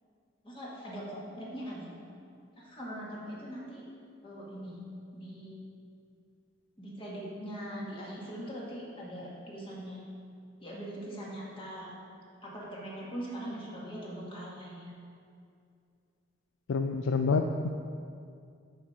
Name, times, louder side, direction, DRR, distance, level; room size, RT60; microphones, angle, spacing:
voice 1, 0.4-1.9 2.6-3.8 4.2-4.8 5.1-5.6 6.8-10.0 10.6-11.9 12.4-14.9, equal, 30° left, -5 dB, 1.7 m, -41 dB
voice 2, 16.7-17.7, left 4 dB, 80° left, 5 dB, 0.4 m, -27 dB
12.0 x 4.3 x 4.8 m, 2.4 s
head